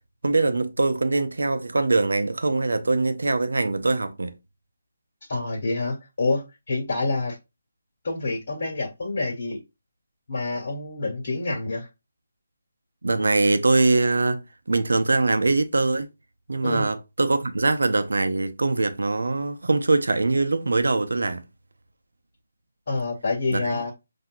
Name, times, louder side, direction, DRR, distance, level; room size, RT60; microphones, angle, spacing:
voice 1, 0.2-4.4 13.0-16.1 16.5-21.4 23.5-23.8, right 3 dB, 70° right, 0.6 m, -22 dB
voice 2, 5.3-7.4 8.0-9.6 10.3-11.9 16.6-16.9 22.9-23.9, left 3 dB, 55° left, 1.4 m, -27 dB
5.7 x 2.7 x 2.5 m
figure-of-eight pair, 150°, 0 cm